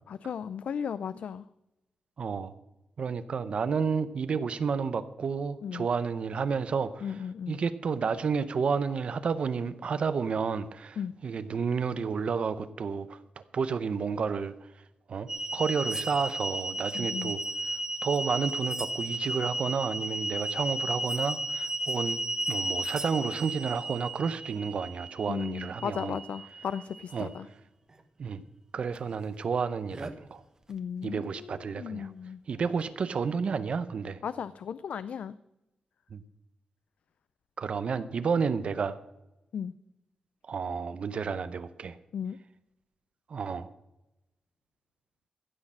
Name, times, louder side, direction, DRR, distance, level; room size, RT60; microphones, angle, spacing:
voice 1, 0.1-1.4 5.6-5.9 7.0-7.6 11.0-11.2 16.9-17.4 25.3-27.5 30.7-32.4 34.2-35.3 39.5-39.8 42.1-42.4, left 7 dB, 70° left, 15 dB, 0.4 m, -36 dB
voice 2, 2.2-2.5 3.0-7.0 7.5-11.0 11.2-13.2 13.5-14.5 15.1-17.4 18.0-22.2 22.5-26.2 27.1-27.3 28.2-28.4 28.7-30.4 31.0-32.1 32.5-34.2 36.1-36.2 37.6-39.0 40.5-41.9 43.3-43.7, right 5 dB, 50° right, 13 dB, 0.6 m, -31 dB
sound 1, 15.3-27.2 28.0-28.1 29.0-29.1 29.9-30.1 32.8-32.9, right 2 dB, 25° right, 1.1 m, -34 dB
15.5 x 6.5 x 7.3 m, 0.93 s
wide cardioid pair, 150°, 2 cm